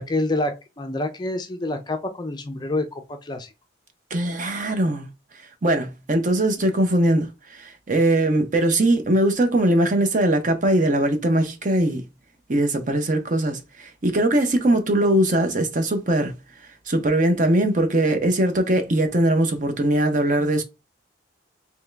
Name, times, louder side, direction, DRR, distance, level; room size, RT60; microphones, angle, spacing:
voice 1, 0.0-3.5, left 2 dB, 20° left, 0.4 m, -27 dB
voice 2, 4.1-5.1 5.6-12.0 12.5-16.4 16.9-20.6, right 1 dB, 40° right, 0.7 m, -21 dB
3.5 x 3.0 x 3.3 m
head